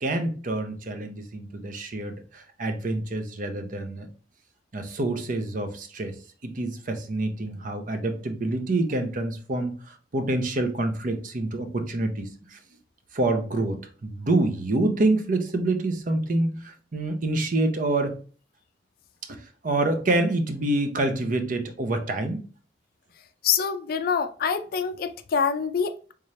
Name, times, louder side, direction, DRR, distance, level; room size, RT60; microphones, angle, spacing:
voice 1, 0.0-4.1 4.7-6.2 6.4-12.6 13.1-18.1 19.3-22.4, right 2 dB, 50° right, 0.6 m, -27 dB
voice 2, 23.4-26.1, left 6 dB, 55° left, 0.4 m, -26 dB
3.5 x 3.2 x 2.7 m
head